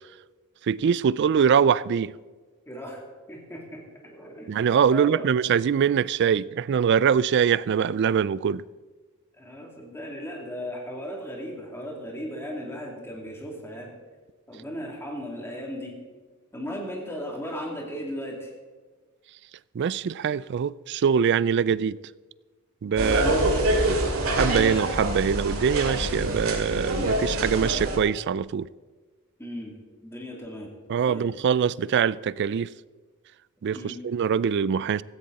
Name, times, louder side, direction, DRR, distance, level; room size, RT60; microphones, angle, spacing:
voice 1, 0.7-2.1 4.5-8.6 19.7-22.0 22.8-23.2 24.4-28.7 30.9-32.7 33.6-35.0, right 7 dB, 50° right, 0.3 m, -23 dB
voice 2, 2.7-4.5 4.9-5.3 9.4-13.9 14.5-16.0 16.5-18.5 23.0-23.8 29.4-29.7 30.0-30.7 31.1-31.3 33.7-34.0, equal, 10° left, 2.8 m, -36 dB
sound 1, 23.0-28.0, right 1 dB, 70° right, 2.5 m, -25 dB
16.5 x 14.5 x 4.1 m
head